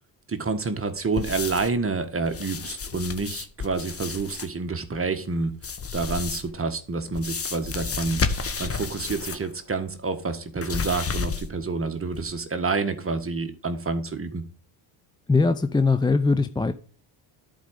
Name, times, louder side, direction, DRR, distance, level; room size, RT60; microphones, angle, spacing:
voice 1, 0.3-5.5 5.9-14.4, right 4 dB, 25° right, 1.7 m, -28 dB
sound 1, 1.2-1.8 2.2-4.5 5.6-6.6 7.1-9.5 9.8-9.9 10.6-11.7 12.1-12.2, left 5 dB, 30° left, 1.3 m, -31 dB
voice 2, 15.3-16.7, left 3 dB, 10° left, 0.6 m, -21 dB
11.5 x 5.0 x 8.0 m
supercardioid pair, 75°, 47 cm